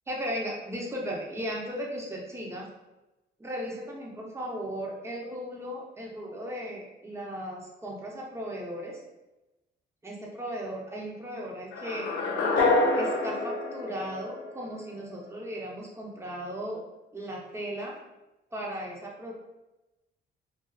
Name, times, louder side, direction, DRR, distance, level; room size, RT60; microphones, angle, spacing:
voice 1, 0.1-2.7 3.4-9.0 10.0-12.1 12.9-16.8 17.1-18.0 18.5-19.3, equal, 15° right, -2 dB, 0.6 m, -36 dB
sound 1, 11.7-14.8, left 2 dB, 70° left, 0.4 m, -27 dB
2.4 x 2.3 x 2.3 m, 1.0 s
cardioid pair, 90°, 20 cm